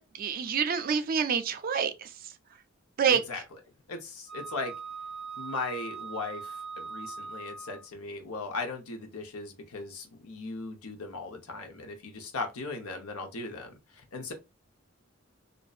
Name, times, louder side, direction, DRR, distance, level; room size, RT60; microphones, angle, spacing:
voice 1, 0.0-2.3 3.0-3.2, right 7 dB, 40° right, 0.3 m, -27 dB
voice 2, 3.1-3.4 3.9-4.7 5.4-14.3, left 3 dB, 85° left, 0.7 m, -38 dB
Wind instrument woodwind instrument, 4.3-7.9, right 5 dB, 5° left, 0.6 m, -41 dB
2.6 x 2.1 x 2.4 m
head